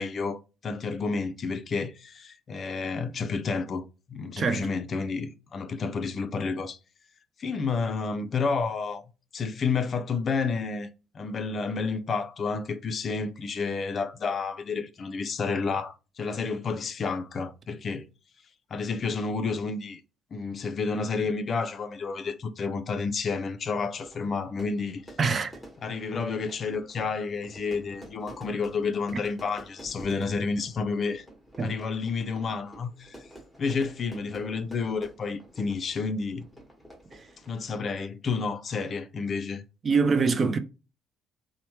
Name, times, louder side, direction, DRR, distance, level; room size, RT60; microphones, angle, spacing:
voice 1, 0.0-3.8 4.1-6.8 7.4-9.0 9.3-10.9 11.1-18.1 18.7-20.0 20.3-25.0 25.8-31.2 31.6-33.3 33.6-36.5 37.5-39.6, left 4 dB, 50° left, 0.4 m, -30 dB
voice 2, 4.4-4.7 25.2-25.5 31.6-31.7 37.1-37.2 39.8-40.6, right 4 dB, 40° right, 0.4 m, -24 dB
Fire / Fireworks, 23.7-37.8, equal, 5° right, 1.1 m, -49 dB
3.0 x 2.1 x 2.9 m
cardioid pair, 85°, 0 cm